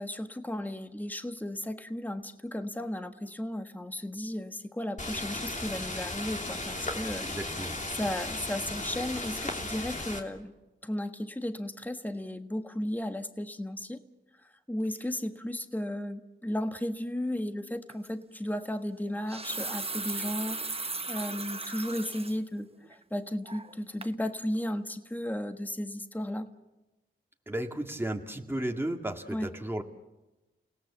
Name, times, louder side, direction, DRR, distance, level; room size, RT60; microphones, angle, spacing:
voice 1, 0.0-7.3 7.9-10.5 10.8-14.0 14.4-26.5 29.3-29.5, left 1 dB, 10° left, 7 dB, 1.4 m, -35 dB
sound 1, 5.0-10.2, left 2 dB, 35° left, 3.1 m, -36 dB
voice 2, 7.2-7.8 27.5-29.8, right 1 dB, 10° right, 3 dB, 2.0 m, -34 dB
sound 2, 17.9-18.1 19.1-22.4 22.8-22.9 23.5-23.8 24.0-24.2, right 3 dB, 30° right, 1.0 m, -37 dB
29.0 x 17.5 x 7.3 m, 1.0 s
cardioid pair, 55°, 21 cm